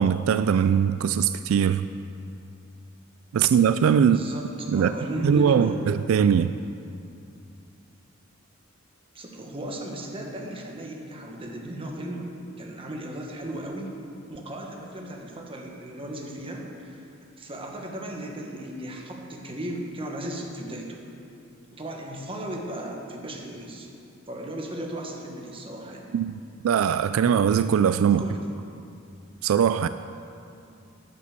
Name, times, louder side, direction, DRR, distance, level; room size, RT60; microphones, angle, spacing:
voice 1, 0.0-1.9 3.3-4.2 4.7-4.9 5.2-6.5 26.1-26.4 26.6-28.2 29.4-29.9, right 7 dB, 80° right, 0.3 m, -21 dB
voice 2, 4.0-5.8 9.1-12.3 12.6-13.9 14.2-17.0 17.4-21.0 21.7-23.9 24.3-26.1 28.1-28.4, right 1 dB, 25° right, 1.5 m, -36 dB
9.8 x 9.7 x 6.6 m
head